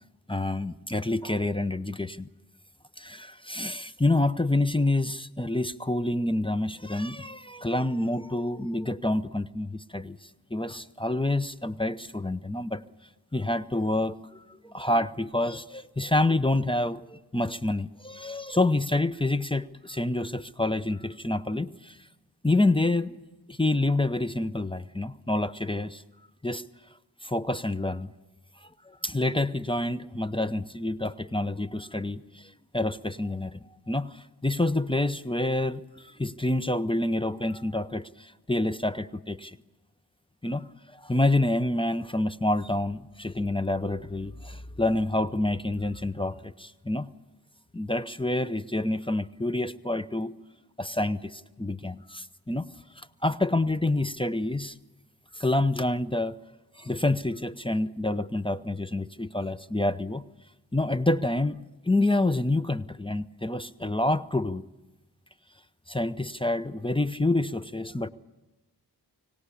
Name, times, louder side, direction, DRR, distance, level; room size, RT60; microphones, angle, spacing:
voice 1, 0.3-2.3 3.0-12.8 13.3-22.0 22.4-23.2 23.5-26.0 26.4-26.6 27.2-28.1 28.6-33.6 33.9-39.6 40.4-47.1 47.7-50.3 50.8-52.7 53.0-54.7 55.3-56.4 56.8-60.2 60.7-64.6 65.9-68.1, left 2 dB, 15° left, 11 dB, 0.7 m, -28 dB
24.5 x 17.5 x 8.4 m, 1.1 s
wide cardioid pair, 40°, 40 cm